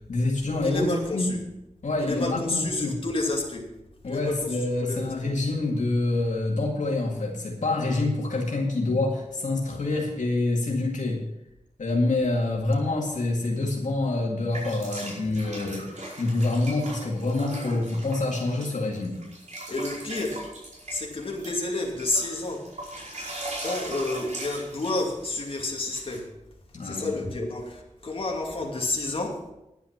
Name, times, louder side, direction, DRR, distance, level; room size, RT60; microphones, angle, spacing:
voice 1, 0.1-1.3 1.8-3.0 4.0-11.2 11.8-19.2 26.7-27.3, left 2 dB, 70° left, -2 dB, 2.1 m, -26 dB
voice 2, 0.6-1.4 2.0-3.7 4.0-4.5 4.8-5.1 19.7-20.4 20.9-22.6 23.6-26.2 26.8-27.8 28.0-29.4, left 2 dB, 45° left, -1 dB, 2.5 m, -29 dB
sound 1, 14.5-26.2, right 1 dB, 65° right, 5.0 m, -39 dB
10.5 x 9.5 x 5.9 m, 0.90 s
wide cardioid pair, 80°, 13 cm